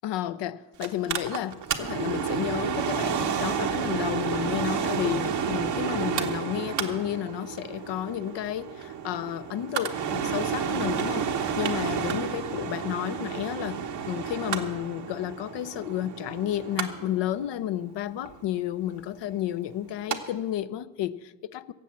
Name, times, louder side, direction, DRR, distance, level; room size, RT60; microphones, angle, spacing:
voice 1, 0.0-21.7, left 12 dB, 85° left, 0.6 m, -32 dB
Mechanical fan, 0.8-20.2 20.5-20.6, right 7 dB, 80° right, 1.1 m, -31 dB
17.0 x 7.4 x 7.4 m
supercardioid pair, 50°, 41 cm